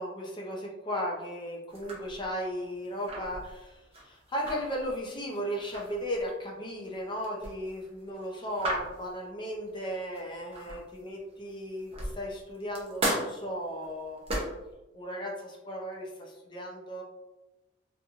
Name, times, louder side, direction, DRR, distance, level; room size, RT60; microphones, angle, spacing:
voice 1, 0.0-14.2 14.9-17.0, equal, 25° left, -2 dB, 0.4 m, -36 dB
sound 1, 1.7-11.0 11.5-14.7, right 1 dB, 30° right, 0.6 m, -37 dB
2.9 x 2.6 x 2.3 m, 1.0 s
head